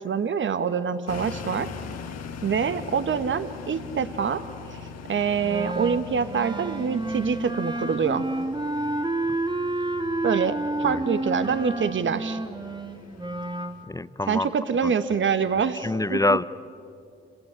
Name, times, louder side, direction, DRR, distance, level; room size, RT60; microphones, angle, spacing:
voice 1, 0.0-1.7 2.4-4.4 4.7-4.8 5.1-8.3 10.2-12.4 14.3-16.4, right 6 dB, 40° right, 12 dB, 1.6 m, -25 dB
sound 1, 1.1-13.8, left 5 dB, 60° left, 1.9 m, -41 dB
Wind instrument woodwind instrument, 5.4-13.8, right 2 dB, 15° right, 1.5 m, -30 dB
voice 2, 13.9-14.5 14.8-14.9 15.8-16.4, left 2 dB, 10° left, 18 dB, 0.7 m, -25 dB
29.5 x 18.0 x 8.4 m, 2.5 s
hypercardioid pair, 50°, 29 cm